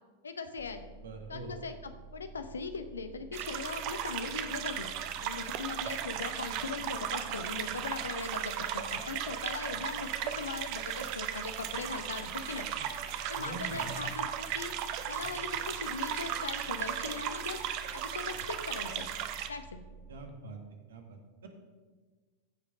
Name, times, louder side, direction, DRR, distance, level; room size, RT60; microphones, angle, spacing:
voice 1, 0.2-0.8 1.3-4.9 5.2-12.7 13.3-14.3 14.5-14.7 15.1-19.1 19.5-19.8, left 4 dB, 70° left, 9 dB, 0.8 m, -40 dB
sound 1, 0.6-20.3, right 4 dB, 10° left, 0.7 m, -51 dB
voice 2, 1.0-1.5 12.7-12.9 13.4-14.0 20.1-20.6 20.9-21.5, right 3 dB, 65° right, 4 dB, 1.6 m, -44 dB
sound 2, 3.3-19.5, right 10 dB, 45° right, 0.7 m, -36 dB
15.0 x 5.2 x 5.0 m, 1.3 s
figure-of-eight pair, 90°, 0 cm